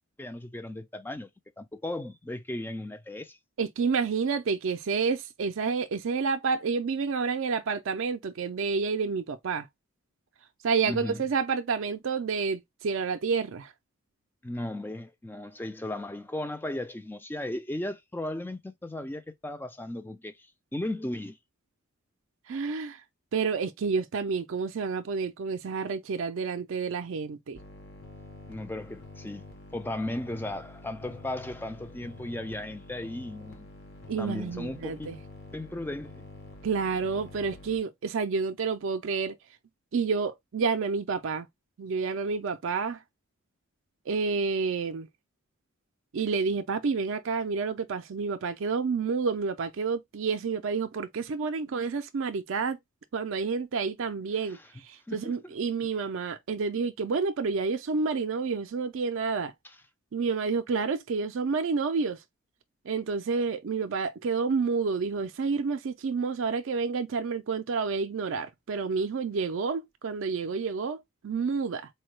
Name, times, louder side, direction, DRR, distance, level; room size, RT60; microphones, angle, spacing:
voice 1, 0.2-1.3 1.6-3.4 10.9-11.3 14.4-21.4 28.5-29.4 29.7-33.7 34.2-35.1 35.5-36.2 54.5-54.7 55.1-55.5 59.6-59.8, left 1 dB, 10° left, 0.3 m, -36 dB
voice 2, 3.6-9.7 10.6-13.7 22.5-23.0 23.3-27.6 34.1-35.2 36.6-39.4 39.9-41.5 41.8-43.0 44.1-45.1 46.1-52.8 53.1-54.6 54.8-59.5 60.1-62.2 62.9-71.9, right 5 dB, 65° right, 0.4 m, -29 dB
sound 1, 27.5-37.8, left 2 dB, 50° left, 0.9 m, -47 dB
4.2 x 2.2 x 3.0 m
head